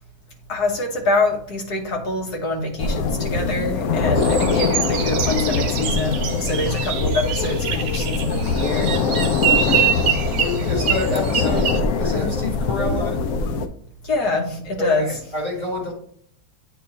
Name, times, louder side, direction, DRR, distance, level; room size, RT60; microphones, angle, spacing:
voice 1, 0.5-8.9 14.0-15.1, left 2 dB, 55° left, 1 dB, 1.7 m, -25 dB
sound 1, 2.8-13.7, left 4 dB, 75° left, 0.8 m, -22 dB
sound 2, 4.2-11.8, right 9 dB, 70° right, 1.2 m, -25 dB
voice 2, 9.5-9.9 10.3-13.3 14.8-15.9, left 2 dB, 25° left, -4 dB, 1.8 m, -28 dB
8.7 x 3.1 x 4.1 m, 0.62 s
omnidirectional pair, 2.1 m